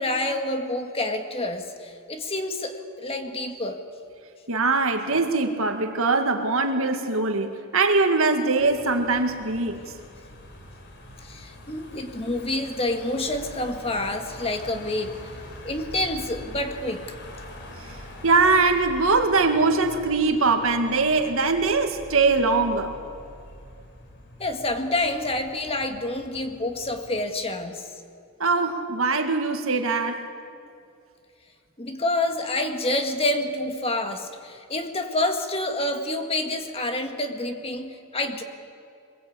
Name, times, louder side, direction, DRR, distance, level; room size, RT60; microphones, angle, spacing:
voice 1, 0.0-3.8 11.2-15.3 15.6-17.1 24.4-27.9 31.8-38.4, left 1 dB, 25° left, 5 dB, 1.9 m, -28 dB
voice 2, 4.5-9.8 18.2-23.0 28.4-30.2, right 3 dB, 65° right, 6 dB, 2.1 m, -22 dB
Car passing by / Engine, 8.6-27.3, left 1 dB, 55° left, 3.5 m, -44 dB
24.5 x 22.0 x 8.6 m, 2.4 s
head